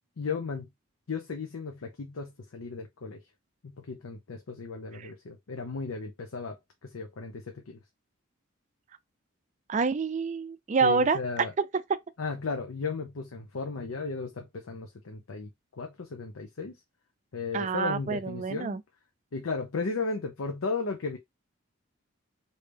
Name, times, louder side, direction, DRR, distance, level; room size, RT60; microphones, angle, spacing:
voice 1, 0.2-0.7 1.1-3.2 3.6-6.6 6.8-7.8 10.8-11.5 12.2-15.5 15.8-16.8 17.3-18.8 19.3-21.2, left 4 dB, 85° left, 0.6 m, -35 dB
voice 2, 9.7-11.2 17.5-18.8, right 4 dB, 35° right, 0.3 m, -27 dB
3.3 x 2.7 x 3.3 m
head